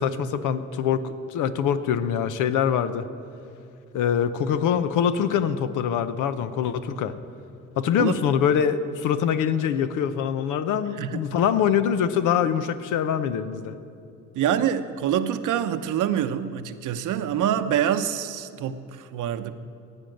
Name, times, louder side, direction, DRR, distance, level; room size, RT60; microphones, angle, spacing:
voice 1, 0.0-3.1 3.9-7.1 7.8-13.8, left 8 dB, 90° left, 11 dB, 0.8 m, -24 dB
voice 2, 14.3-19.5, right 9 dB, 80° right, 10 dB, 0.9 m, -26 dB
15.5 x 8.9 x 7.8 m, 2.6 s
cardioid pair, 90°, 30 cm